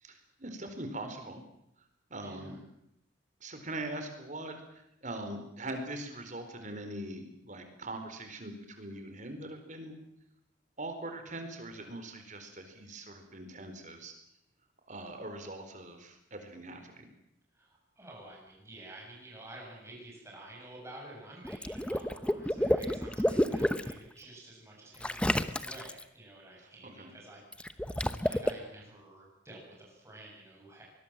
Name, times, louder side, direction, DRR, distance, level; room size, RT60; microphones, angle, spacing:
voice 1, 0.0-1.4 2.1-2.5 3.4-4.5 5.0-9.9 10.8-14.1 14.9-17.1 27.0-27.1, right 1 dB, 40° right, 7 dB, 4.4 m, -41 dB
voice 2, 2.2-2.6 17.5-30.8, right 1 dB, 15° right, -2 dB, 7.8 m, -50 dB
Water / Liquid, 21.4-23.9 25.0-26.0 27.5-28.5, equal, 5° left, 0.9 m, -29 dB
24.0 x 21.0 x 7.5 m, 0.79 s
head